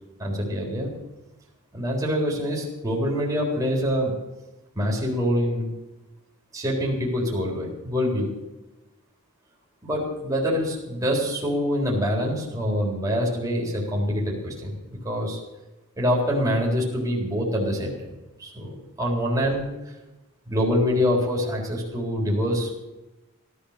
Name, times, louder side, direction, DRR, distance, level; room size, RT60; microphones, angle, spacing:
voice 1, 0.2-0.9 1.7-4.1 4.8-5.7 6.5-8.3 9.8-14.8 15.0-15.4 16.0-18.1 18.4-19.7 20.5-22.9, equal, 15° right, -3 dB, 3.9 m, -25 dB
17.5 x 12.0 x 6.7 m, 1.0 s
head